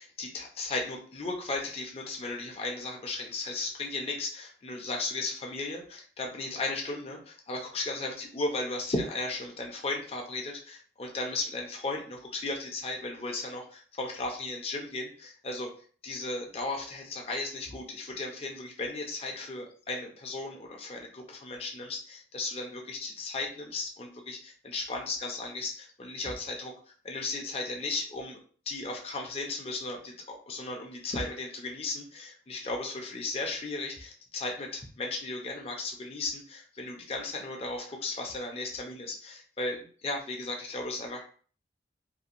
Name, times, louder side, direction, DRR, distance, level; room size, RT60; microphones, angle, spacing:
voice 1, 0.0-15.7 16.0-26.7 27.0-28.4 28.7-41.5, left 2 dB, 35° left, 1 dB, 0.5 m, -35 dB
2.7 x 2.1 x 2.5 m, 0.44 s
head